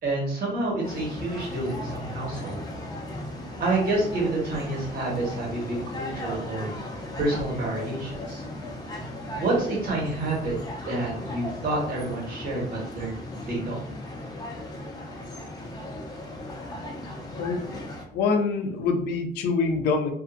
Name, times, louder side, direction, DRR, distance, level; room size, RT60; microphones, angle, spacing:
voice 1, 0.0-2.6 3.6-6.7 7.2-8.4 9.3-10.5 10.8-13.2 13.5-13.8, right 2 dB, 60° right, -4 dB, 1.4 m, -28 dB
sound 1, 0.8-18.0, left 1 dB, 25° left, 0.6 m, -37 dB
voice 2, 17.4-17.9 18.1-20.1, left 4 dB, 80° left, 5 dB, 0.5 m, -25 dB
2.6 x 2.4 x 2.5 m, 0.66 s
cardioid pair, 110°, 17 cm